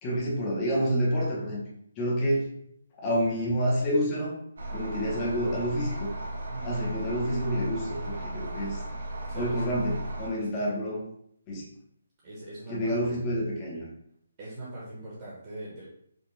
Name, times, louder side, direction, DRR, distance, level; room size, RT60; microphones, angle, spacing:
voice 1, 0.0-1.6 2.0-2.4 3.0-4.3 4.7-6.1 6.6-8.8 9.3-11.0 11.5-11.7 12.7-13.9, equal, 15° left, -5 dB, 0.7 m, -28 dB
sound 1, 4.6-10.3, right 1 dB, 65° right, 1.1 m, -36 dB
voice 2, 6.5-6.9 9.3-9.6 10.4-10.7 12.2-13.2 14.4-15.9, right 1 dB, 25° right, -7 dB, 0.9 m, -41 dB
5.1 x 2.2 x 3.1 m, 0.71 s
hypercardioid pair, 175°, 0 cm